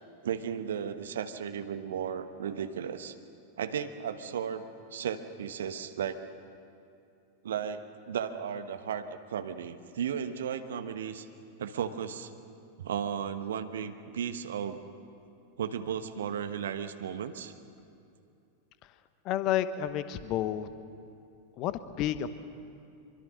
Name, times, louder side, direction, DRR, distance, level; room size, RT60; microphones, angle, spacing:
voice 1, 0.2-3.1 3.6-4.6 4.9-6.2 7.4-11.3 11.6-12.3 12.8-14.8 15.6-17.5, right 8 dB, 60° right, 9 dB, 1.2 m, -35 dB
voice 2, 19.2-20.7 21.6-22.3, left 11 dB, 40° left, 13 dB, 1.0 m, -30 dB
24.5 x 24.0 x 6.3 m, 2.6 s
figure-of-eight pair, 90°, 0 cm